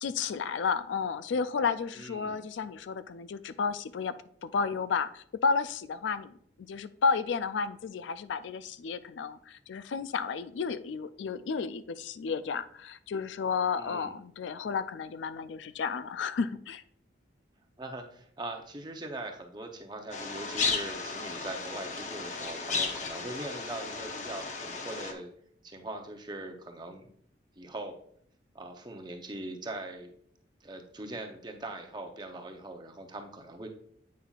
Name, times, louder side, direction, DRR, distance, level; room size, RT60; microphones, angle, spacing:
voice 1, 0.0-4.1 4.4-6.4 6.7-16.8, left 5 dB, 80° left, 13 dB, 0.4 m, -32 dB
voice 2, 2.0-2.4 13.8-14.1 17.8-25.3 25.6-27.1 27.6-27.9 28.5-30.1 30.6-33.7, right 2 dB, 25° right, 4 dB, 0.7 m, -41 dB
sound 1, 20.1-25.1, left 4 dB, 40° left, 0.7 m, -34 dB
8.4 x 5.6 x 2.4 m, 0.64 s
head